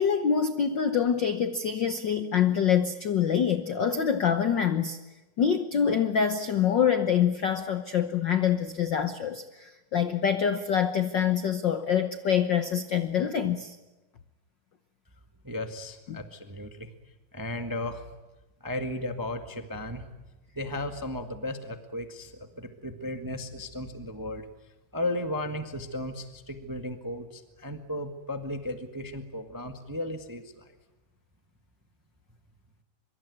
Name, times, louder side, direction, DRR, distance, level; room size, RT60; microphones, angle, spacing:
voice 1, 0.0-5.0 5.4-13.8 16.1-16.2, left 8 dB, 85° left, 9 dB, 1.0 m, -25 dB
voice 2, 15.4-16.9 17.3-18.0 18.6-20.1 20.5-24.5 24.9-30.7, left 1 dB, 15° right, 7 dB, 0.6 m, -35 dB
24.0 x 24.0 x 9.5 m, 1.1 s
omnidirectional pair, 3.6 m